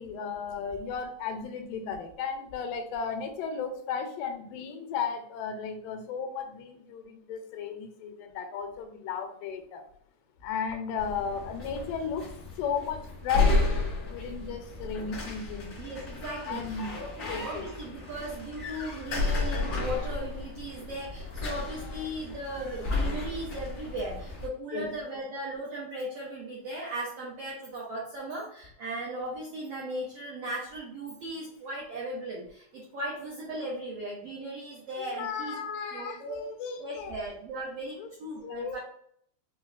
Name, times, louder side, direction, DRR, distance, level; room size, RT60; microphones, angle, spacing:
voice 1, 0.0-9.8 10.4-13.7 14.1-15.8 16.5-17.0 17.3-17.7 21.8-22.1 24.7-24.9 35.0-37.2 38.0-38.1 38.4-38.8, left 6 dB, 85° left, 5 dB, 2.2 m, -35 dB
sound 1, 11.0-24.5, left 3 dB, 70° left, 0.9 m, -32 dB
voice 2, 15.8-35.6 35.9-36.4 36.8-38.8, right 1 dB, 90° right, -4 dB, 1.3 m, -37 dB
5.3 x 2.2 x 2.3 m, 0.66 s
omnidirectional pair, 3.8 m